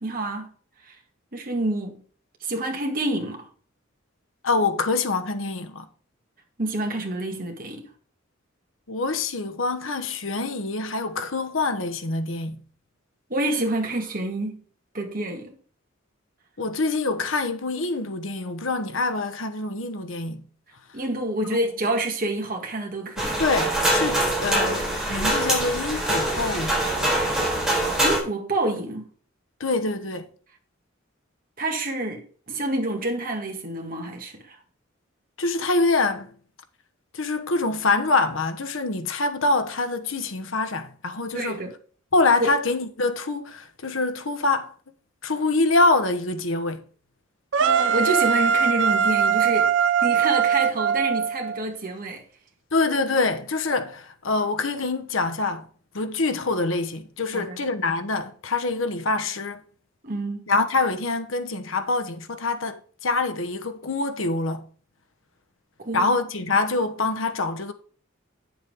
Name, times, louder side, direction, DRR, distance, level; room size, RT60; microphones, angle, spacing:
voice 1, 0.0-0.5 1.3-2.0 2.4-3.5 6.6-7.9 13.3-14.6 14.9-15.5 20.9-23.4 28.0-29.1 31.6-34.6 41.3-41.7 42.4-42.5 47.6-49.7 50.0-52.2 57.3-57.6 60.0-60.4 65.8-66.1, right 2 dB, 45° right, 2.0 m, -28 dB
voice 2, 4.4-5.9 8.9-12.6 16.6-20.4 21.4-21.6 23.4-26.8 29.6-30.3 35.4-36.3 37.1-41.6 42.1-44.7 45.2-46.8 52.7-55.6 55.9-59.6 60.5-62.8 63.0-64.6 65.9-67.7, left 3 dB, 75° left, 1.1 m, -25 dB
sound 1, 23.2-28.2, right 1 dB, 5° right, 4.0 m, -24 dB
sound 2, 47.5-51.6, right 7 dB, 65° right, 0.6 m, -21 dB
8.7 x 7.3 x 3.6 m
head